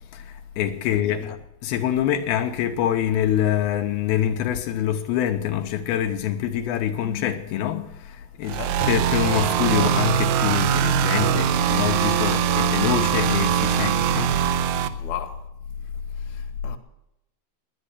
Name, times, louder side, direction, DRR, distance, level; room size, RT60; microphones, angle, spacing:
voice 1, 0.1-14.7, left 10 dB, 85° left, 2.7 m, -25 dB
voice 2, 0.9-1.3 8.5-8.9 12.1-12.4 15.0-15.4 16.3-16.8, left 9 dB, 65° left, 2.1 m, -37 dB
sound 1, 8.4-14.9, right 8 dB, 80° right, 2.4 m, -22 dB
11.0 x 9.9 x 8.2 m
omnidirectional pair, 4.4 m